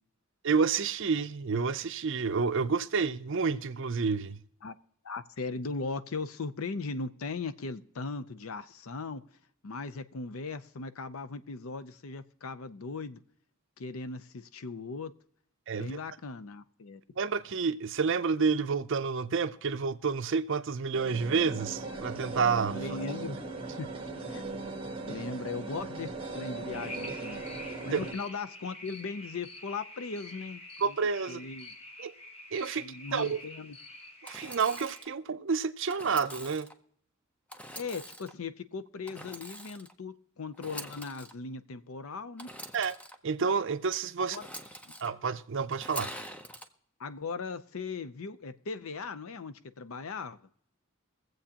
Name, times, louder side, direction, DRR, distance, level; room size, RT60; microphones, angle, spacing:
voice 1, 0.4-4.4 15.7-16.0 17.2-22.9 27.9-28.0 30.8-31.4 32.0-32.1 32.5-32.9 33.1-33.4 34.2-36.7 42.7-43.0 43.2-44.4 45.0-46.1, right 5 dB, 60° right, 0.5 m, -29 dB
voice 2, 5.0-9.2 9.6-13.2 13.8-15.1 15.7-17.0 22.7-23.4 23.8-23.9 24.3-24.4 25.1-27.4 27.8-30.9 31.3-31.7 32.8-33.8 37.8-42.5 44.2-44.5 44.8-45.0 47.0-50.4, left 4 dB, 75° left, 0.6 m, -38 dB
sound 1, 20.9-28.1, right 3 dB, 25° right, 1.3 m, -38 dB
sound 2, 26.7-35.0, left 1 dB, 30° left, 1.1 m, -47 dB
Engine / Sawing, 34.2-35.1 35.9-36.7 37.5-38.3 39.1-39.9 40.5-41.3 42.4-43.1 44.3-45.1 45.7-46.7, equal, 5° left, 0.6 m, -44 dB
23.0 x 7.8 x 2.9 m
head